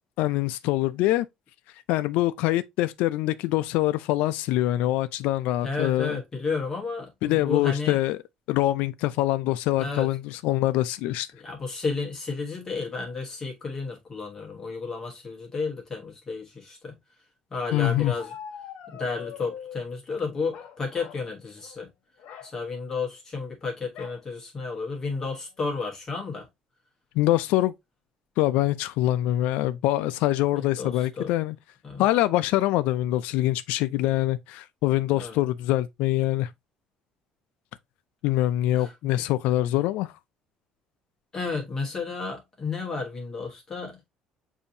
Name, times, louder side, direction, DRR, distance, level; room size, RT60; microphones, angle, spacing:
voice 1, 0.2-1.3 1.9-6.2 7.2-8.2 8.5-11.3 17.7-18.1 27.2-27.7 28.4-31.6 32.0-36.5 38.2-40.1, left 15 dB, 75° left, 0.3 m, -24 dB
voice 2, 5.6-8.0 9.8-10.1 11.4-17.0 17.5-18.3 18.9-21.9 22.4-26.5 30.5-31.3 31.8-32.0 35.1-35.3 38.8-39.2 41.3-44.1, left 4 dB, 25° left, 1.1 m, -32 dB
Bark, 17.7-19.9 20.5-21.3 21.6-21.8 22.2-22.5 23.9-24.2 24.8-24.9 25.2-25.6, left 8 dB, 60° left, 1.3 m, -43 dB
6.9 x 2.7 x 2.6 m
cardioid pair, 160°, 2 cm